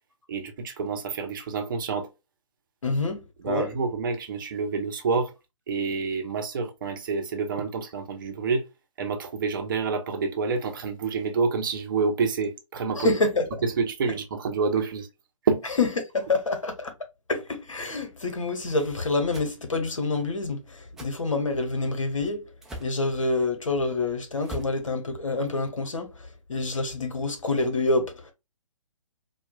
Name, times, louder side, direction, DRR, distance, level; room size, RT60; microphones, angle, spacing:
voice 1, 0.3-2.1 3.4-5.3 5.7-8.6 9.0-13.1 13.6-15.1 15.4-15.6, right 4 dB, 40° right, 0.7 m, -28 dB
voice 2, 2.8-3.7 13.0-13.5 15.8-16.9 17.3-22.5 22.8-28.3, left 3 dB, 70° left, 1.2 m, -27 dB
sound 1, 19.3-19.5 21.0-21.1 22.6-23.0 24.4-24.8, equal, ahead, 0.5 m, -39 dB
4.4 x 2.4 x 2.4 m
figure-of-eight pair, 135°, 17 cm